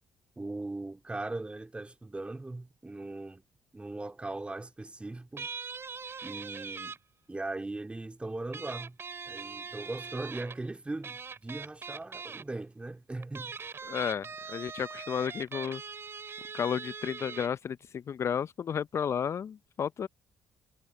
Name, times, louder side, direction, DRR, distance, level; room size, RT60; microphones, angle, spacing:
voice 1, 0.4-3.4 3.7-5.5 6.2-7.0 7.3-9.0 9.2-13.6, right 2 dB, 20° right, 3.0 m, -39 dB
sound 1, 5.4-7.0 8.5-10.6 11.0-12.4 13.2-17.5, right 5 dB, 40° right, 5.1 m, -41 dB
voice 2, 13.9-15.8 16.5-20.1, left 7 dB, 50° left, 0.8 m, -32 dB
hypercardioid pair, 45°, 6 cm